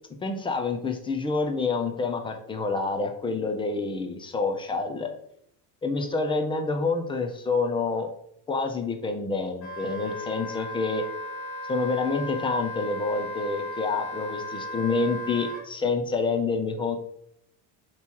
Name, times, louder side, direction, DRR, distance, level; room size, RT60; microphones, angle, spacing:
voice 1, 0.2-5.1 5.8-8.1 8.5-11.0 11.7-17.0, left 4 dB, 15° left, 5 dB, 0.3 m, -27 dB
Wind instrument woodwind instrument, 9.6-15.6, left 1 dB, 40° left, 1.4 m, -36 dB
7.0 x 3.0 x 4.4 m, 0.72 s
cardioid pair, 165°, 43 cm